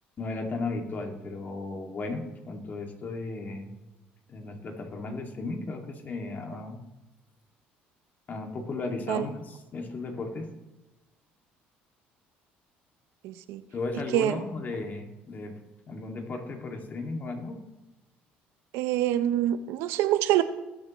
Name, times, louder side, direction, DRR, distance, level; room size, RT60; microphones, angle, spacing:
voice 1, 0.2-3.7 4.3-6.8 8.3-10.5 13.7-15.6 15.9-17.6, left 3 dB, 40° left, 3 dB, 2.3 m, -35 dB
voice 2, 13.2-13.6 14.1-14.3 18.7-20.4, right 13 dB, 80° right, 12 dB, 0.8 m, -25 dB
21.0 x 7.2 x 3.1 m, 1.1 s
supercardioid pair, 80°, 4 cm